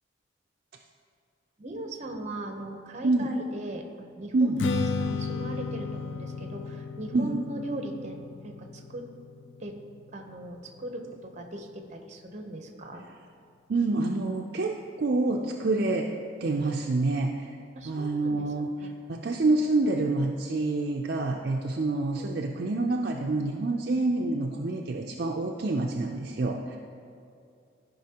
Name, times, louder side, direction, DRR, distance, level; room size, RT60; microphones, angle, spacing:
voice 1, 1.6-4.5 5.0-9.1 9.6-9.8 10.1-13.0 16.6-16.7 17.7-18.5 18.8-18.9 22.2-22.4, right 1 dB, 40° right, 4 dB, 0.8 m, -39 dB
Strum, 4.6-10.9, left 4 dB, 75° left, 0.4 m, -34 dB
voice 2, 13.7-16.1 16.4-17.5 17.8-18.7 19.1-26.8, right 2 dB, 55° right, 1 dB, 0.4 m, -27 dB
13.5 x 5.5 x 2.9 m, 2.5 s
head